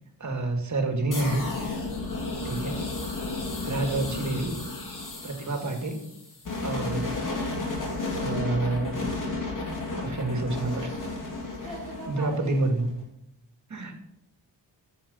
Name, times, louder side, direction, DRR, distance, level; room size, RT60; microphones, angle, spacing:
voice 1, 0.2-1.5 2.4-2.8 3.6-4.5 5.2-6.0 6.6-7.2 8.2-8.9 9.9-11.0 12.1-12.9 13.7-14.0, right 2 dB, 45° right, 3 dB, 2.3 m, -28 dB
sound 1, 1.1-12.9, left 3 dB, 50° left, 3.0 m, -33 dB
voice 2, 1.9-2.3 4.9-5.2 11.3-12.8, right 1 dB, ahead, -8 dB, 3.9 m, -43 dB
12.0 x 7.7 x 5.6 m, 0.81 s
wide cardioid pair, 155°, 42 cm